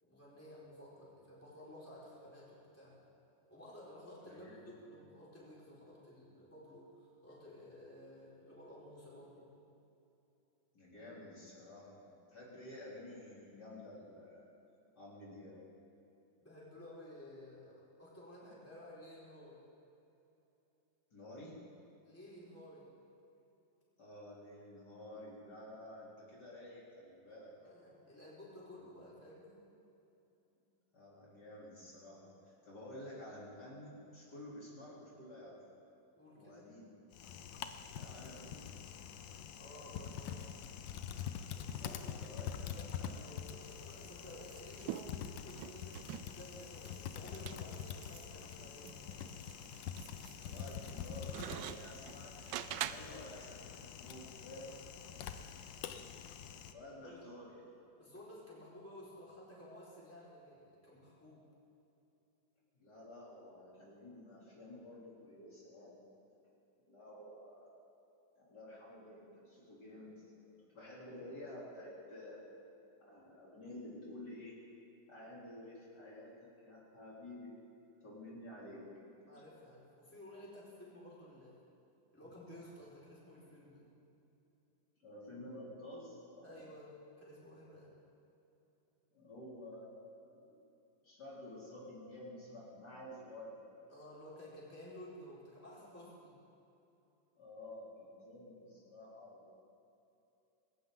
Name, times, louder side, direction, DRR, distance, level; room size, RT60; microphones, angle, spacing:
voice 1, 0.0-3.0 3.5-9.5 16.4-19.7 22.0-22.9 27.6-29.6 36.2-36.6 39.6-40.5 41.5-42.3 42.6-49.2 57.0-57.3 58.0-61.5 79.3-81.6 82.1-83.9 86.4-88.0 93.9-96.4, left 1 dB, 5° left, -8 dB, 4.6 m, -54 dB
voice 2, 4.2-5.0 10.7-14.4 15.0-15.6 21.1-21.6 24.0-27.5 30.9-35.6 36.4-36.9 37.9-38.7 41.7-43.4 50.4-54.8 56.3-56.4 56.7-57.6 62.8-66.1 66.9-67.8 68.4-72.4 73.0-74.6 75.1-77.6 78.0-79.2 82.2-82.3 85.0-86.6 89.1-90.6 91.0-93.6 97.4-99.5, left 1 dB, 55° left, -7 dB, 3.9 m, -51 dB
Typing, 37.1-56.7, left 8 dB, 75° left, 1.4 m, -46 dB
sound 1, 43.6-53.3, right 12 dB, 75° right, 1.1 m, -47 dB
20.5 x 18.0 x 3.8 m, 2.9 s
omnidirectional pair, 2.1 m